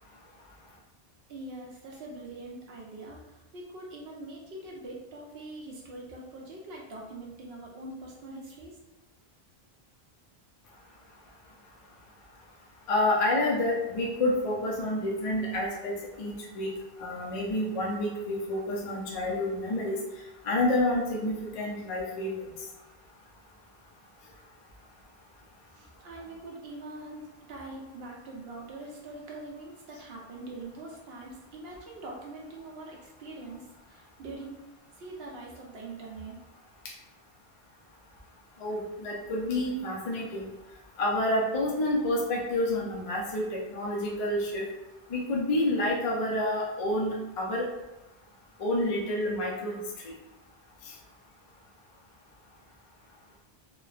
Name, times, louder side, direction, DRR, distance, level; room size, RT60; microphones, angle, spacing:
voice 1, 1.3-8.8 25.7-34.6 35.0-36.4, right 2 dB, 75° right, -1 dB, 0.9 m, -43 dB
voice 2, 12.9-16.7 17.0-20.0 20.4-22.5 38.6-40.5 41.0-44.6 45.1-47.7 48.6-49.7 50.9-51.0, left 1 dB, 50° left, -2 dB, 0.4 m, -28 dB
3.1 x 2.0 x 2.3 m, 1.0 s
omnidirectional pair, 1.0 m